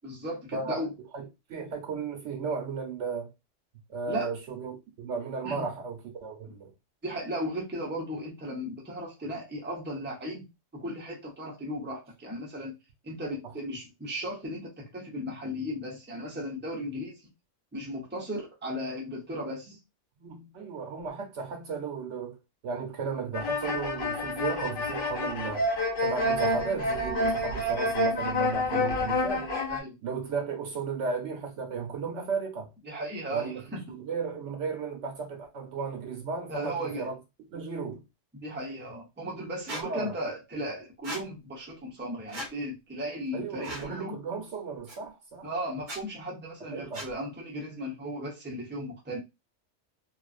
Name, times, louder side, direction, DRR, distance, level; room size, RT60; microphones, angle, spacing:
voice 1, 0.0-0.9 4.1-4.3 5.4-5.7 7.0-10.4 10.7-12.8 13.0-17.2 17.7-19.8 28.7-29.0 29.7-29.9 32.8-33.8 36.5-37.1 38.3-44.2 45.4-49.2, equal, 10° right, 0.6 m, -36 dB
voice 2, 1.1-3.3 3.9-6.7 20.2-22.4 22.6-25.7 26.0-29.4 30.0-32.7 33.3-33.6 33.9-37.1 37.5-38.0 39.8-40.1 43.3-45.5 46.7-47.0, right 5 dB, 75° right, 1.1 m, -34 dB
sound 1, 23.3-29.8, left 1 dB, 50° left, 0.9 m, -28 dB
Squeak, 39.7-39.8 41.0-41.2 42.3-42.5 43.6-43.9 44.9-45.0 45.8-46.0 46.9-47.1, right 1 dB, 45° right, 0.8 m, -37 dB
2.5 x 2.3 x 2.4 m
omnidirectional pair, 1.3 m